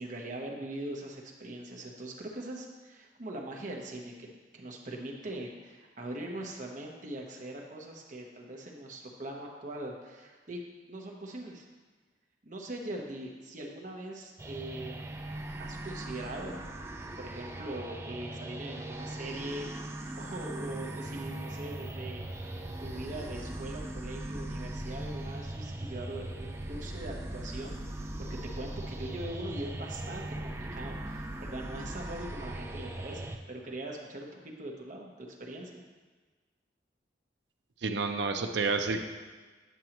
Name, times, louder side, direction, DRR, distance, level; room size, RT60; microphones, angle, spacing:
voice 1, 0.0-10.6 10.9-11.7 12.4-15.1 15.6-16.6 17.2-35.8, right 1 dB, 45° right, 0 dB, 1.0 m, -41 dB
sound 1, 14.4-33.4, right 1 dB, 15° right, 0.4 m, -39 dB
voice 2, 37.8-39.0, right 4 dB, 75° right, 6 dB, 0.6 m, -29 dB
9.2 x 6.2 x 3.0 m, 1.4 s
head